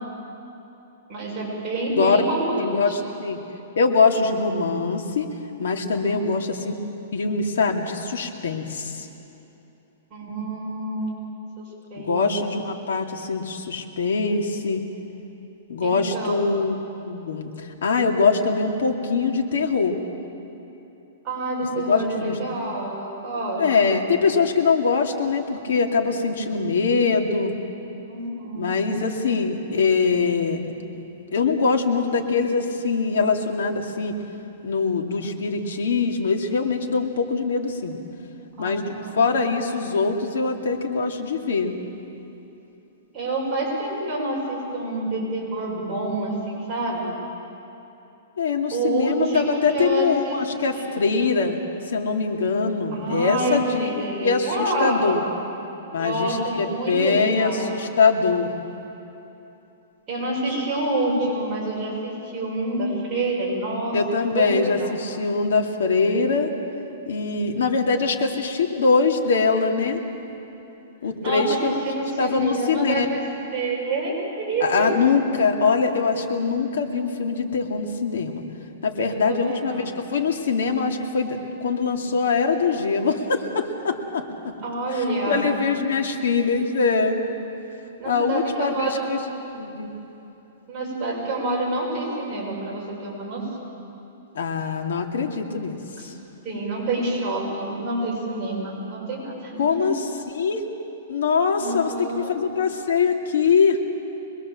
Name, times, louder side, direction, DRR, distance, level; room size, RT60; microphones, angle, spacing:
voice 1, 1.1-2.8 6.0-6.4 10.1-11.6 11.9-12.2 15.8-16.4 21.2-23.9 28.1-28.9 38.6-39.3 43.1-47.1 48.7-50.4 50.7-50.8 52.9-55.3 55.9-57.8 60.1-64.9 71.2-73.2 73.5-75.0 79.1-79.9 84.6-85.5 88.0-89.3 90.7-93.7 96.0-96.1 96.4-99.9 101.6-102.3, right 2 dB, 15° right, -7 dB, 6.6 m, -28 dB
voice 2, 2.6-3.4 3.8-5.3 5.6-6.7 7.1-9.1 12.0-14.8 15.7-16.7 17.0-20.0 21.8-22.6 23.6-27.5 28.6-30.6 31.3-34.1 34.6-38.0 38.6-41.8 48.4-51.6 51.9-55.2 55.9-58.5 63.9-66.5 67.1-70.0 71.0-71.7 72.2-73.1 74.6-78.4 78.8-79.8 80.1-84.5 85.3-87.3 88.1-89.2 89.5-89.9 94.3-95.8 96.0-96.1 99.6-100.0 100.3-100.6 101.1-103.8, left 4 dB, 80° left, 3 dB, 2.6 m, -23 dB
24.5 x 21.5 x 7.6 m, 3.0 s
hypercardioid pair, 170°, 0 cm